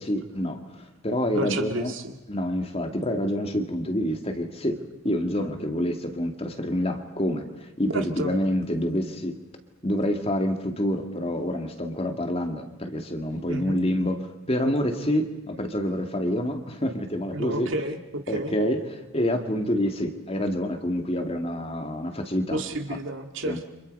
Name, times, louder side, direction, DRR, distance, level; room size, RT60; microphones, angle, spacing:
voice 1, 0.0-1.9 2.3-4.8 5.0-9.4 9.8-14.2 14.5-17.7 18.3-18.8 19.1-22.6 23.4-23.6, equal, 25° left, 5 dB, 2.2 m, -27 dB
voice 2, 1.3-2.1 7.9-8.3 13.5-13.8 17.3-18.5 22.5-23.7, right 1 dB, 60° right, 6 dB, 2.2 m, -31 dB
30.0 x 26.5 x 5.5 m, 0.95 s
head